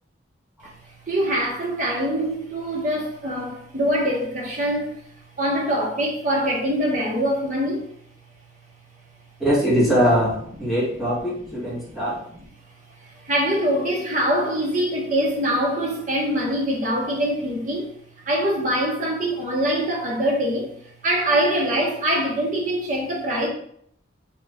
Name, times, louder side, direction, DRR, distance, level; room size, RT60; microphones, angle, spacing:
voice 1, 1.1-4.9 5.4-7.8 13.3-17.9 18.3-20.7 21.0-23.5, equal, 40° right, -2 dB, 0.8 m, -23 dB
voice 2, 9.4-10.3 10.6-12.2, equal, ahead, -8 dB, 1.0 m, -21 dB
3.0 x 2.3 x 3.3 m, 0.65 s
head